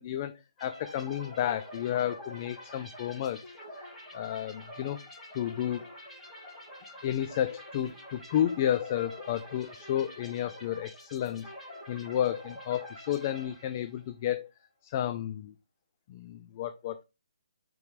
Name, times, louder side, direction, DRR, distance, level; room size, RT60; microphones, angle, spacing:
voice 1, 0.0-3.4 3.7-5.0 5.3-5.8 7.0-11.5 11.9-14.5 14.8-15.5 16.1-17.0, left 11 dB, 25° left, 9 dB, 0.4 m, -32 dB
sound 1, 0.6-14.1, equal, ahead, 2.8 m, -47 dB
5.2 x 4.6 x 4.9 m, 0.26 s
hypercardioid pair, 165°, 3 cm